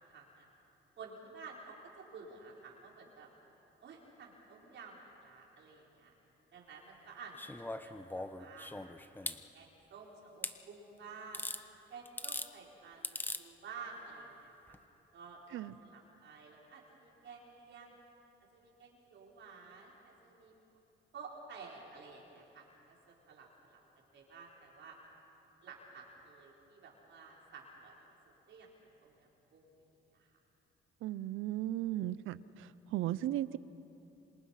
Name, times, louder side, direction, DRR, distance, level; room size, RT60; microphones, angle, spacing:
voice 1, 0.1-0.5 1.0-3.3 3.8-6.1 6.5-8.7 9.3-11.4 11.9-14.8 15.1-18.0 18.5-20.5 21.1-23.8 24.1-25.0 25.6-28.0 28.2-28.7 29.0-29.7 30.1-30.4, right 4 dB, 70° right, -2 dB, 4.6 m, -52 dB
sound 1, 7.4-9.4 10.4-10.6 11.3-11.6 12.1-12.5 13.0-13.4 14.7-14.8, left 1 dB, 10° left, 1.1 m, -40 dB
voice 2, 31.0-33.6, right 14 dB, 85° right, 17 dB, 0.7 m, -36 dB
27.5 x 26.0 x 5.8 m, 3.0 s
cardioid pair, 90°, 20 cm